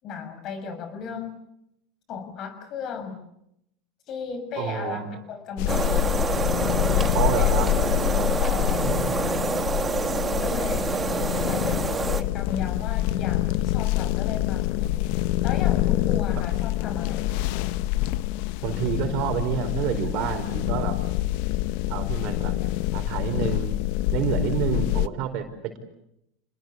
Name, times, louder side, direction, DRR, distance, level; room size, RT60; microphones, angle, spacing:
voice 1, 0.0-1.4 2.1-3.2 4.1-6.7 6.9-7.6 8.4-9.0 10.4-15.1 15.4-17.3, left 6 dB, 45° left, 10 dB, 6.5 m, -36 dB
voice 2, 4.6-5.2 7.1-7.7 8.1-9.2 10.7-11.4 18.6-21.0 21.9-22.5 22.9-23.8 24.1-25.8, right 8 dB, 55° right, 7 dB, 4.6 m, -29 dB
sound 1, 5.6-25.1, left 15 dB, 65° left, 0.9 m, -26 dB
sound 2, 5.7-12.2, right 5 dB, 20° right, 1.8 m, -27 dB
28.5 x 21.0 x 8.2 m, 0.80 s
supercardioid pair, 110°, 0 cm